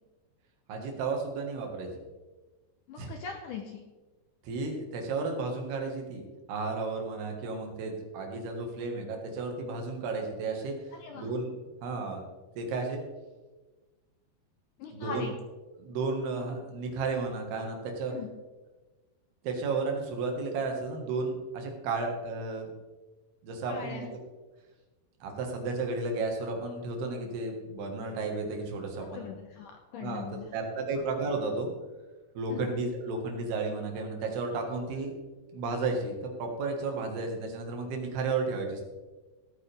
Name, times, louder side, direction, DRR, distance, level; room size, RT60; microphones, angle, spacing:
voice 1, 0.7-1.9 3.0-3.1 4.4-6.2 6.5-10.8 11.1-11.6 11.8-12.2 12.6-13.0 14.9-15.3 15.8-18.1 19.4-22.7 23.4-24.1 25.2-29.3 30.0-31.7 32.4-35.1 35.5-38.8, right 3 dB, 75° right, 2 dB, 3.7 m, -33 dB
voice 2, 2.9-3.8 10.9-11.3 14.8-15.3 18.1-18.3 23.7-24.1 29.0-30.5 30.9-31.0 32.5-32.7, left 7 dB, 75° left, 3 dB, 2.0 m, -41 dB
17.0 x 9.1 x 3.5 m, 1.2 s
omnidirectional pair, 4.6 m